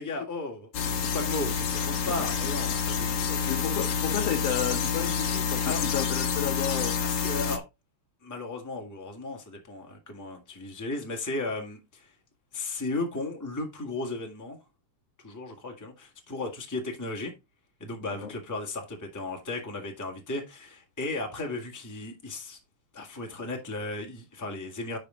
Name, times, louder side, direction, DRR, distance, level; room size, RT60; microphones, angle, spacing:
voice 1, 0.0-3.6 5.6-5.8 7.0-7.6 8.2-12.1 12.5-14.6 15.2-17.3 17.8-22.6 22.9-25.0, left 2 dB, 10° left, 1.2 m, -35 dB
sound 1, 0.7-7.6, left 6 dB, 55° left, 1.9 m, -28 dB
voice 2, 3.3-7.0 18.0-18.3, left 10 dB, 75° left, 1.5 m, -32 dB
11.5 x 4.3 x 3.8 m
omnidirectional pair, 3.4 m